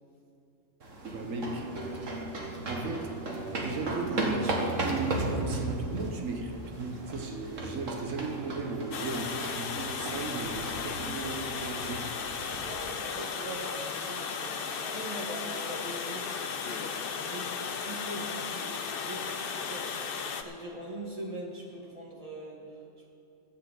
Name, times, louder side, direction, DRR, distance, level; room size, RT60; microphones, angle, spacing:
sound 1, 0.8-12.6, right 2 dB, 70° right, 1.9 m, -35 dB
voice 1, 1.1-1.7 2.7-3.2 3.6-12.2, right 3 dB, 90° right, 4 dB, 1.5 m, -36 dB
Water, 8.9-20.4, left 6 dB, 50° left, 0.8 m, -35 dB
voice 2, 12.6-23.1, right 1 dB, 25° right, -2 dB, 2.2 m, -42 dB
13.5 x 7.7 x 7.9 m, 2.8 s
omnidirectional pair, 1.3 m